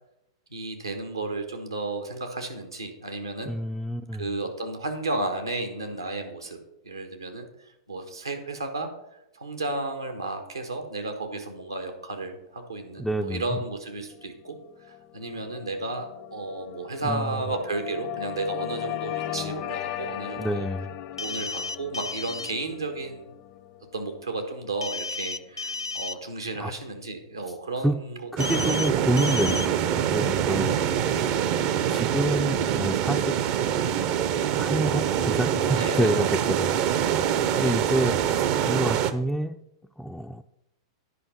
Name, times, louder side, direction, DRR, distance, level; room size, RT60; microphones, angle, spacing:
voice 1, 0.5-3.5 4.2-6.6 6.8-8.9 9.3-20.7 21.2-23.3 23.9-28.2 28.4-28.8 30.7-31.0 35.8-36.2 37.3-37.8, right 2 dB, 85° right, 6 dB, 1.4 m, -33 dB
voice 2, 3.5-4.3 13.0-13.6 17.0-17.4 20.4-20.9 26.6-26.7 27.8-28.0 28.3-30.7 31.9-33.3 34.6-37.2 37.5-39.6 40.0-40.4, equal, ahead, 3 dB, 0.4 m, -28 dB
sound 1, 13.6-26.1, left 12 dB, 45° left, 0.7 m, -38 dB
sound 2, 21.2-22.5 24.8-26.2 28.4-28.9 29.2-29.7, left 3 dB, 85° left, 0.3 m, -32 dB
sound 3, 28.4-39.1, right 9 dB, 45° right, 0.6 m, -25 dB
10.0 x 5.4 x 5.4 m, 0.84 s
figure-of-eight pair, 100°, 2 cm